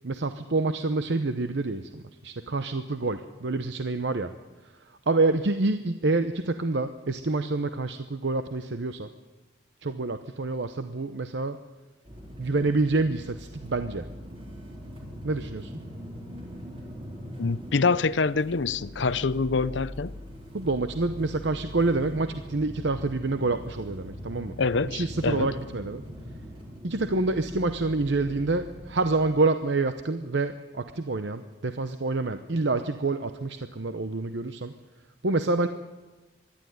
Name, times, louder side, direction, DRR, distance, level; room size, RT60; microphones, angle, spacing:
voice 1, 0.0-4.3 5.1-9.1 9.8-11.6 12.4-14.1 15.2-15.8 20.5-24.5 24.8-26.0 26.8-34.7 35.2-35.7, right 3 dB, 70° right, 0.8 m, -27 dB
sound 1, 12.1-29.4, equal, 30° right, 4.0 m, -42 dB
voice 2, 17.4-20.2 24.6-25.5, left 4 dB, 75° left, 0.6 m, -25 dB
25.0 x 12.0 x 9.4 m
head